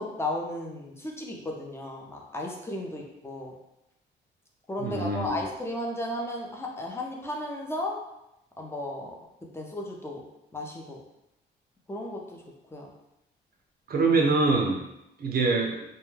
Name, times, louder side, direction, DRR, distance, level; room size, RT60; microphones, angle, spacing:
voice 1, 0.0-3.5 4.7-8.0 8.6-9.1 9.5-10.2 10.5-11.0 11.9-12.4 12.7-12.9, left 1 dB, 15° left, -1 dB, 0.5 m, -34 dB
voice 2, 4.8-5.3 13.9-14.8 15.2-15.8, right 3 dB, 50° right, 0 dB, 0.5 m, -24 dB
2.2 x 2.2 x 3.1 m, 0.87 s
cardioid pair, 90°, 20 cm